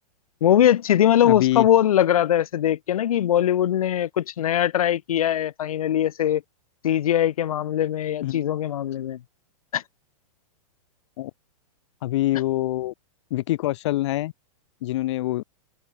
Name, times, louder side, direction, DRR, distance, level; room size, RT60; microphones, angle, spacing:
voice 1, 0.4-6.4 6.8-9.2 9.7-9.8, left 11 dB, 70° left, 4.9 m, -21 dB
voice 2, 1.2-1.7 8.2-8.4 11.2-11.3 12.0-12.9 13.3-14.3 14.8-15.4, left 16 dB, 50° left, 4.1 m, -25 dB
open air
hypercardioid pair, 160°, 19 cm